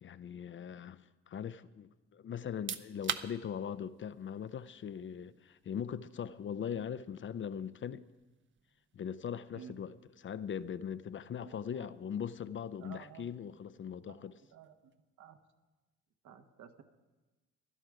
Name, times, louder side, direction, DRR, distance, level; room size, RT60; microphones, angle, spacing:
voice 1, 0.0-8.0 8.9-14.4, left 8 dB, 40° left, 0.5 m, -40 dB
sound 1, 2.4-15.1, right 7 dB, 40° right, 0.6 m, -49 dB
voice 2, 11.5-11.9 12.8-13.3 14.1-14.2 14.5-14.7 15.2-15.4 16.2-16.8, right 8 dB, 70° right, 1.2 m, -52 dB
16.5 x 11.5 x 4.8 m
cardioid pair, 90°, 30 cm